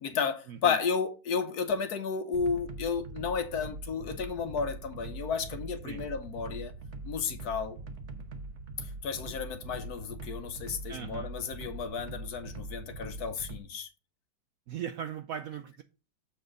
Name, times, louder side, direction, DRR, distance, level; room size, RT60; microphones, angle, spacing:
voice 1, 0.0-6.7 7.0-7.8 8.8-13.9, left 6 dB, 65° left, 1.2 m, -33 dB
sound 1, 2.3-13.6, right 3 dB, 50° right, 1.0 m, -42 dB
voice 2, 10.9-11.3 14.7-15.8, right 8 dB, 75° right, 0.8 m, -39 dB
7.5 x 4.6 x 5.0 m
omnidirectional pair, 1.9 m